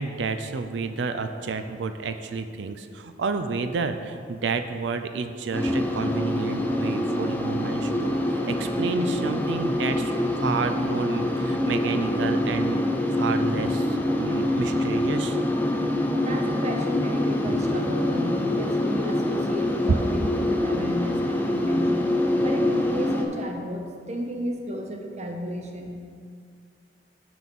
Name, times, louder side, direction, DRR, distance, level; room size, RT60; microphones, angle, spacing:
voice 1, 0.0-12.8 13.1-15.4, right 4 dB, 85° right, 8 dB, 0.4 m, -30 dB
sound 1, 5.5-23.3, left 1 dB, 10° left, 0.5 m, -25 dB
voice 2, 16.2-22.1 22.4-26.1, equal, 40° right, 3 dB, 0.8 m, -33 dB
6.1 x 6.0 x 5.3 m, 2.2 s
head